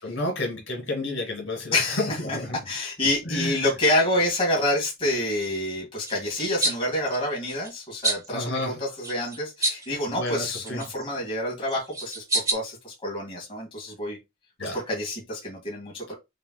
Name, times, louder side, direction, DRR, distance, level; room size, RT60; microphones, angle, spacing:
voice 1, 0.0-2.6 3.2-3.6 8.3-8.8 10.1-10.8 14.6-14.8, left 1 dB, 65° left, 2.8 m, -30 dB
voice 2, 1.7-2.1 2.7-14.2 14.6-16.1, left 1 dB, 30° left, 2.1 m, -27 dB
sound 1, 6.0-6.2 6.6-6.8 7.1-7.7 8.0-8.3 9.0-9.9 10.3-11.1 11.7-12.5, right 1 dB, 15° right, 0.9 m, -28 dB
6.8 x 3.3 x 2.3 m
head